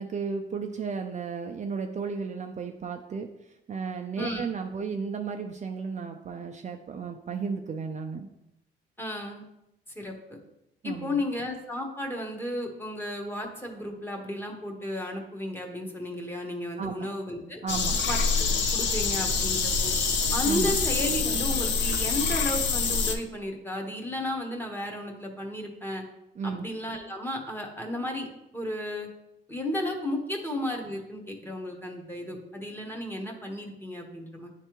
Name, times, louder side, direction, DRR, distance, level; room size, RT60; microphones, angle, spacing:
voice 1, 0.0-8.3 10.8-11.2 16.8-17.1 17.6-18.1 20.4-20.7 26.4-26.7, right 5 dB, 35° right, 4 dB, 0.5 m, -34 dB
voice 2, 9.0-9.4 9.9-10.4 10.8-17.6 18.1-19.9 20.3-26.0 26.4-28.3 28.5-29.1 29.5-34.5, left 1 dB, 10° left, 1 dB, 1.2 m, -33 dB
sound 1, 17.7-23.1, left 5 dB, 65° left, 0.7 m, -26 dB
9.8 x 3.3 x 3.0 m, 0.87 s
cardioid pair, 90°, 20 cm